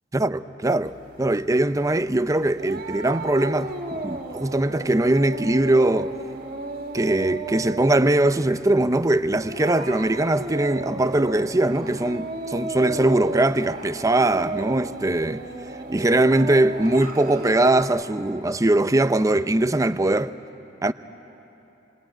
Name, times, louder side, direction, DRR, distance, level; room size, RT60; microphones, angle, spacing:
voice 1, 0.1-6.1 6.9-15.4 15.9-20.3 20.8-20.9, right 2 dB, 20° right, 0.6 m, -21 dB
sound 1, 0.8-17.8, right 2 dB, 55° right, 2.0 m, -35 dB
27.5 x 23.0 x 9.1 m
head